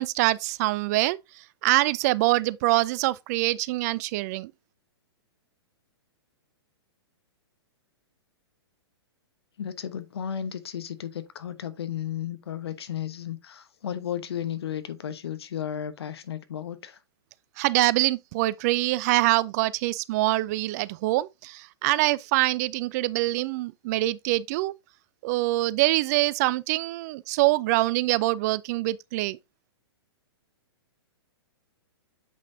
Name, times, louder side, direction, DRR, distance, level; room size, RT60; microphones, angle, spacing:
voice 1, 0.0-4.5 17.6-24.7 25.2-29.4, right 19 dB, 40° right, 0.4 m, -24 dB
voice 2, 9.6-17.0, left 9 dB, 70° left, 1.0 m, -34 dB
7.8 x 5.6 x 2.6 m
hypercardioid pair, 115°, 14 cm